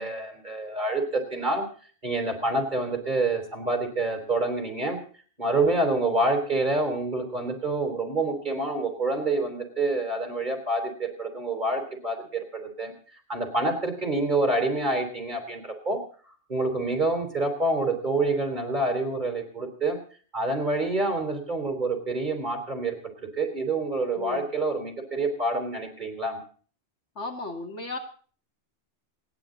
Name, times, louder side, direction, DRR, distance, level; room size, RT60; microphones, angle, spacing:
voice 1, 0.0-1.6 2.0-5.0 5.4-12.9 13.3-16.0 16.5-20.0 20.3-26.4, right 2 dB, 40° right, 4 dB, 4.1 m, -27 dB
voice 2, 24.1-24.5 27.2-28.0, left 3 dB, 85° left, 3 dB, 2.8 m, -35 dB
28.0 x 10.5 x 3.9 m, 0.43 s
omnidirectional pair, 1.2 m